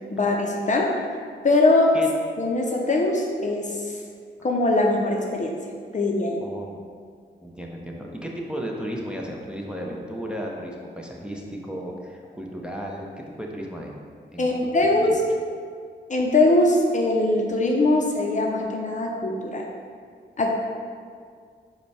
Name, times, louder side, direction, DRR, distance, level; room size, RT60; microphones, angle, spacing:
voice 1, 0.1-1.0 1.4-2.0 2.4-3.9 4.4-5.5 5.9-6.4 14.4-15.2 16.1-19.7 20.4-20.5, left 2 dB, 40° left, 0 dB, 0.6 m, -21 dB
voice 2, 6.4-6.8 7.4-13.1 13.4-13.9 14.3-14.7 15.1-15.2, equal, 5° right, -1 dB, 0.6 m, -34 dB
5.0 x 2.2 x 4.7 m, 2.1 s
cardioid pair, 55°, 19 cm